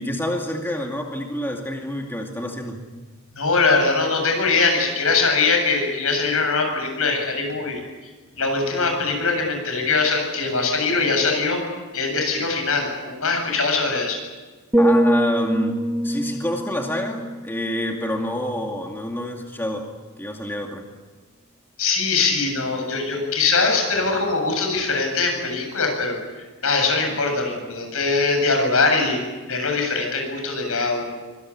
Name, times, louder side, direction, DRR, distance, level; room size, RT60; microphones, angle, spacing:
voice 1, 0.0-2.9 14.8-19.9 20.2-20.9, equal, 10° left, 1 dB, 2.4 m, -27 dB
voice 2, 3.3-7.8 8.4-11.6 11.9-14.2 21.8-26.2 26.6-29.2 29.5-31.1, left 4 dB, 70° left, 3 dB, 8.0 m, -22 dB
sound 1, 14.7-18.7 19.1-19.4, equal, 10° right, 1.0 m, -23 dB
25.0 x 22.5 x 8.7 m, 1.3 s
head